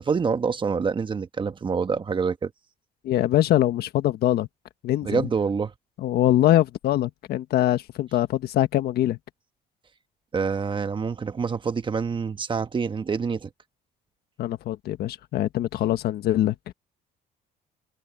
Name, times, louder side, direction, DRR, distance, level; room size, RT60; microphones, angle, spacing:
voice 1, 0.0-2.5 5.0-5.7 10.3-13.5, right 5 dB, 30° right, 1.2 m, -26 dB
voice 2, 3.0-4.5 4.8-5.3 6.0-9.2 14.4-16.5, left 13 dB, 70° left, 1.5 m, -23 dB
cardioid pair, 110°, 17 cm